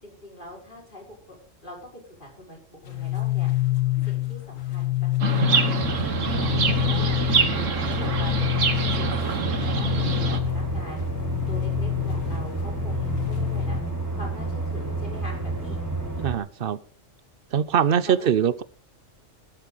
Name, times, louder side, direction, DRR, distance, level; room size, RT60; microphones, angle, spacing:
voice 1, 0.0-1.4 1.6-3.5 4.0-5.8 6.2-7.2 7.5-8.5 8.9-11.0 11.5-13.8 14.1-15.8 17.7-18.3, equal, 40° left, -1 dB, 5.7 m, -43 dB
sound 1, 2.8-13.8, left 18 dB, 80° left, 1.4 m, -27 dB
Chirp tweet, 5.2-10.4, right 5 dB, 75° right, 1.7 m, -26 dB
sound 2, 5.8-16.4, right 2 dB, 15° right, 4.9 m, -30 dB
voice 2, 16.2-16.8 17.5-18.6, right 8 dB, 50° right, 17 dB, 0.8 m, -22 dB
15.5 x 12.0 x 4.0 m, 0.42 s
omnidirectional pair, 1.3 m